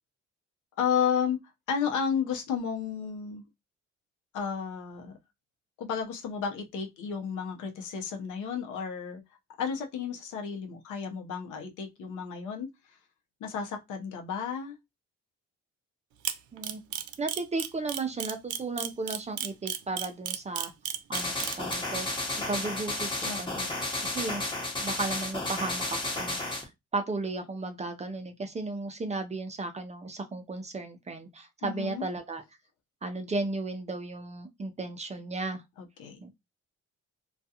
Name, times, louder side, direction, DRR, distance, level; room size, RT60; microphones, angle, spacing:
voice 1, 0.8-1.4 1.7-3.4 4.3-5.2 5.8-9.2 9.6-12.7 13.4-14.8 23.2-23.7 31.6-32.0 35.8-36.2, left 7 dB, 80° left, 0.7 m, -32 dB
Camera, 16.2-21.7, right 11 dB, 75° right, 0.5 m, -32 dB
voice 2, 17.2-20.7 21.1-22.1 22.5-23.7 24.1-24.5 24.8-32.4 33.0-35.6 36.2-36.3, right 3 dB, 25° right, 0.4 m, -35 dB
sound 1, 21.1-26.6, left 2 dB, 15° left, 0.9 m, -32 dB
2.3 x 2.3 x 2.7 m
cardioid pair, 90°, 30 cm